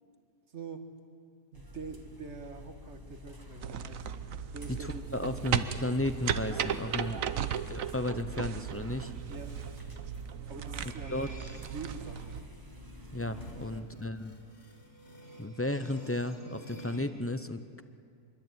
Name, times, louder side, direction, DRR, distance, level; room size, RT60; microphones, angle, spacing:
voice 1, 0.5-0.9 1.5-4.1 4.5-5.0 7.3-7.7 9.3-9.6 10.5-12.4 13.7-14.0, right 4 dB, 50° right, 7 dB, 2.0 m, -45 dB
sound 1, 1.5-13.8, left 3 dB, 15° right, 1.5 m, -51 dB
sound 2, 3.6-12.4, right 8 dB, 65° right, 1.2 m, -36 dB
voice 2, 4.7-7.2 7.7-9.1 11.1-11.3 13.1-14.4 15.4-17.8, left 1 dB, 15° left, 10 dB, 0.5 m, -34 dB
sound 3, 8.6-17.1, equal, 45° left, 3.6 m, -50 dB
25.5 x 23.0 x 9.2 m, 2.2 s
omnidirectional pair, 1.6 m